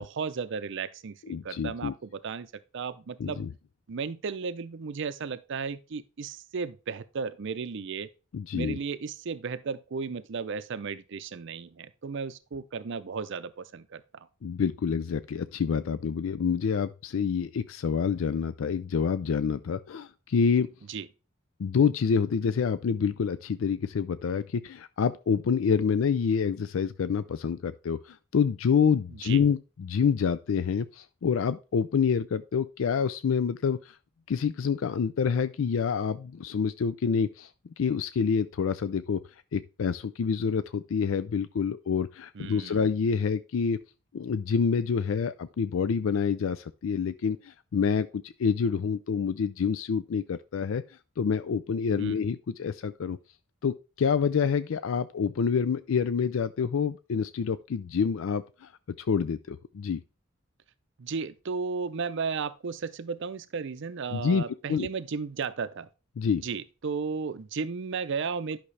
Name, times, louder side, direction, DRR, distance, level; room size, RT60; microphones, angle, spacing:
voice 1, 0.0-3.5 3.9-8.1 8.5-14.3 20.9-21.1 29.2-29.4 42.4-42.9 52.0-52.2 61.0-65.9 66.4-68.6, right 5 dB, 65° right, 0.5 m, -34 dB
voice 2, 1.3-1.9 3.2-3.5 8.3-8.8 14.4-20.7 21.6-34.0 34.3-37.5 37.8-39.2 39.5-43.8 44.1-50.8 51.2-53.2 53.6-58.7 59.0-60.0 64.1-64.4 64.7-64.9 66.2-66.4, left 6 dB, 75° left, 0.4 m, -27 dB
11.0 x 5.9 x 3.3 m
head